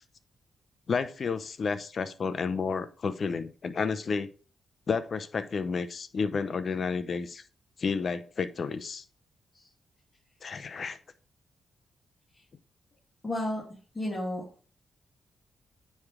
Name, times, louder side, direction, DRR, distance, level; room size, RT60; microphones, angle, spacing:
voice 1, 0.9-4.3 4.9-7.4 7.8-9.0 10.4-11.0, left 5 dB, 50° left, 13 dB, 0.6 m, -31 dB
voice 2, 13.2-13.6 13.9-14.4, left 1 dB, 20° left, -6 dB, 2.4 m, -32 dB
9.5 x 3.2 x 3.6 m, 0.40 s
cardioid pair, 110°, 0 cm